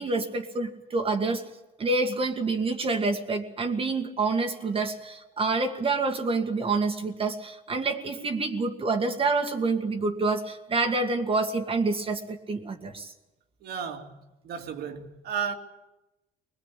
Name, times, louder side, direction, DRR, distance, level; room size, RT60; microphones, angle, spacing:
voice 1, 0.0-1.5 1.8-13.1, right 3 dB, 35° right, 2.0 m, -27 dB
voice 2, 13.6-14.2 14.4-15.5, right 7 dB, 70° right, 2.7 m, -33 dB
21.5 x 20.5 x 8.4 m
cardioid pair, 110°, 17 cm